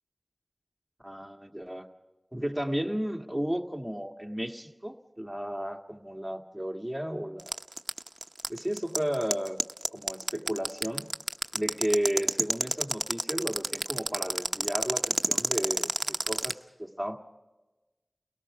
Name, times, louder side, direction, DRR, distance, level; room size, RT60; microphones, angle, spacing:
voice 1, 1.0-1.9 2.3-7.6 8.5-9.6 9.9-11.1 11.5-17.2, equal, 5° right, 3 dB, 1.8 m, -33 dB
sound 1, 7.4-16.5, right 2 dB, 50° right, 0.7 m, -27 dB
30.0 x 18.0 x 4.9 m, 1.1 s
wide cardioid pair, 55°, 0 cm